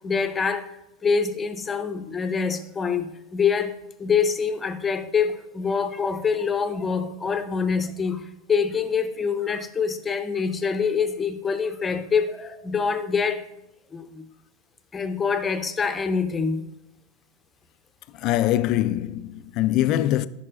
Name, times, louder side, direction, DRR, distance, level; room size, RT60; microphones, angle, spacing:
voice 1, 0.0-13.5 13.9-14.2 14.9-16.6, left 5 dB, 20° left, 0.7 m, -25 dB
voice 2, 18.2-20.3, left 13 dB, 50° left, 0.3 m, -23 dB
11.0 x 5.4 x 2.5 m
hypercardioid pair, 95°, 0 cm